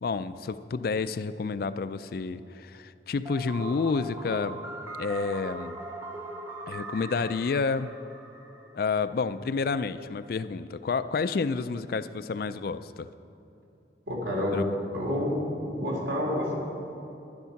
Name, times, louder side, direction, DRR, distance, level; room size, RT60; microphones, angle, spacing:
voice 1, 0.0-4.6 5.0-5.8 6.7-7.9 8.7-13.1 14.5-14.7, left 4 dB, 55° left, 13 dB, 0.3 m, -29 dB
sound 1, 3.3-9.1, right 2 dB, 15° right, 0.9 m, -40 dB
voice 2, 14.1-14.6 14.9-16.5, left 1 dB, 70° right, -3 dB, 3.5 m, -29 dB
11.5 x 11.0 x 5.8 m, 2.8 s
head